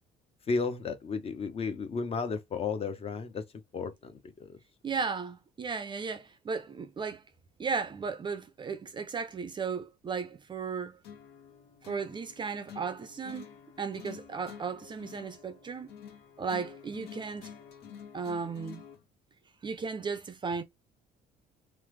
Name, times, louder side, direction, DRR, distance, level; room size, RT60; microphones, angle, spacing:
voice 1, 0.5-3.5 3.7-4.6, left 4 dB, 35° left, 0.6 m, -33 dB
voice 2, 4.8-7.2 7.6-11.0 11.8-13.5 13.8-15.9 16.4-17.5 18.1-18.8 19.6-20.6, right 5 dB, 30° right, 0.4 m, -35 dB
sound 1, 11.0-19.0, left 8 dB, 75° left, 0.7 m, -49 dB
3.2 x 2.0 x 3.1 m
cardioid pair, 110°, 17 cm